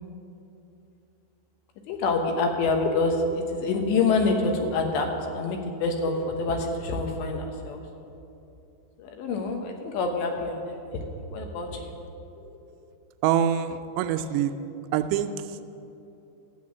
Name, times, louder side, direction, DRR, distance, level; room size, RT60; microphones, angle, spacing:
voice 1, 1.9-5.1 5.3-7.8 9.0-12.0 12.4-12.5, left 3 dB, 85° left, 3 dB, 3.4 m, -27 dB
voice 2, 13.2-14.5 14.9-15.3, right 10 dB, 85° right, 8 dB, 2.8 m, -24 dB
12.5 x 7.4 x 8.5 m, 2.8 s
omnidirectional pair, 4.9 m